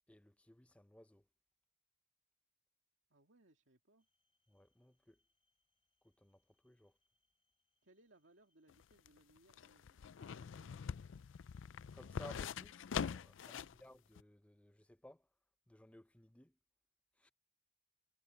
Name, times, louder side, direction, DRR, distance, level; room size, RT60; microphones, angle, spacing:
voice 1, 0.1-1.3 4.5-5.2 6.0-7.0 11.9-15.3 15.7-16.6 17.2-17.3, left 1 dB, 5° left, 0.6 m, -59 dB
voice 2, 3.1-4.1 7.8-11.3 13.5-13.7 17.2-17.3, right 2 dB, 75° right, 2.3 m, -69 dB
sound 1, 4.0-9.0, left 2 dB, 30° left, 5.6 m, -88 dB
sound 2, 8.7-13.8 14.2-14.3, left 7 dB, 85° left, 0.4 m, -44 dB
head